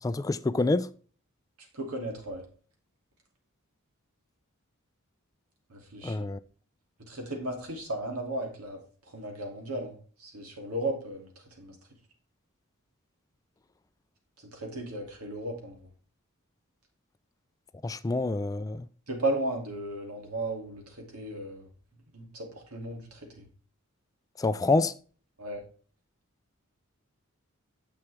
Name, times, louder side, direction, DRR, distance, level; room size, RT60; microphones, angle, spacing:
voice 1, 0.0-0.9 6.0-6.4 17.8-18.9 24.4-24.9, left 3 dB, 15° left, 0.3 m, -27 dB
voice 2, 1.7-2.5 5.7-6.2 7.1-8.8 9.1-11.3 11.6-11.8 14.5-15.8 19.1-21.6 22.1-23.5 25.4-25.6, right 1 dB, 90° right, 2.7 m, -35 dB
9.7 x 7.0 x 3.4 m
head